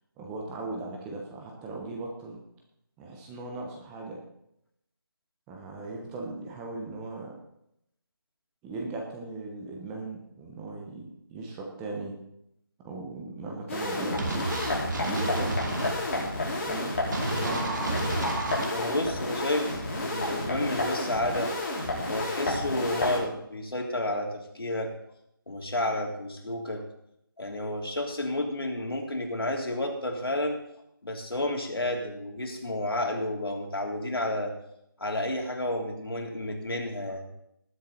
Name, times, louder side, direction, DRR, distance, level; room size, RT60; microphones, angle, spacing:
voice 1, 0.2-2.4 3.0-4.2 5.5-7.3 8.6-12.2 12.8-14.5 14.9-15.6 16.6-16.9 17.4-18.1, right 2 dB, 10° right, 0 dB, 1.0 m, -38 dB
sound 1, 13.7-23.2, left 2 dB, 35° left, 4.5 m, -31 dB
sound 2, 14.2-15.9 17.1-18.6, right 2 dB, 55° right, 2.7 m, -31 dB
voice 2, 18.7-21.5 22.1-24.9 25.5-26.8 27.4-34.5 35.0-37.2, left 1 dB, 85° left, 1 dB, 3.3 m, -31 dB
19.5 x 7.7 x 4.1 m, 0.77 s
figure-of-eight pair, 170°, 12 cm